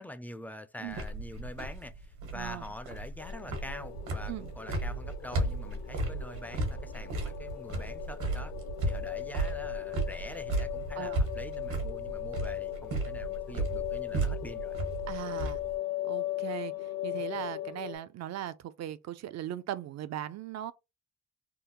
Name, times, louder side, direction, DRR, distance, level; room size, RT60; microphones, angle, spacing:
voice 1, 0.0-8.5 8.9-14.7, left 1 dB, 5° left, 0.4 m, -45 dB
sound 1, 0.9-15.8, right 2 dB, 80° right, 1.3 m, -34 dB
voice 2, 2.3-2.7 4.3-4.5 11.0-11.2 15.1-15.6 16.0-20.7, right 12 dB, 60° right, 0.5 m, -39 dB
sound 2, 3.2-18.0, left 14 dB, 55° left, 0.6 m, -38 dB
3.6 x 2.1 x 2.9 m
cardioid pair, 90°, 30 cm